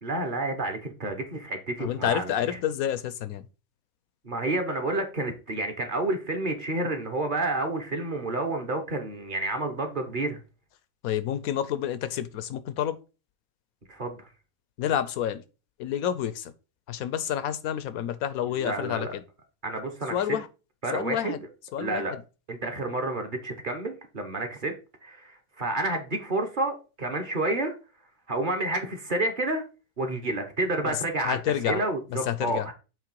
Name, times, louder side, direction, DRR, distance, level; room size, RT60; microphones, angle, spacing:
voice 1, 0.0-2.3 4.2-10.4 13.9-14.3 18.6-19.1 19.6-20.1 20.8-21.3 21.8-22.1 22.5-24.7 25.0-27.7 28.3-29.6 30.0-31.4 31.7-32.7, right 2 dB, 40° right, 1.1 m, -29 dB
voice 2, 1.8-3.5 11.0-13.0 14.8-15.4 15.8-16.5 16.9-19.2 20.1-20.5 20.9-21.4 21.7-22.2 30.8-31.8 32.1-32.7, left 10 dB, 80° left, 1.1 m, -29 dB
7.5 x 3.2 x 4.6 m
omnidirectional pair, 1.5 m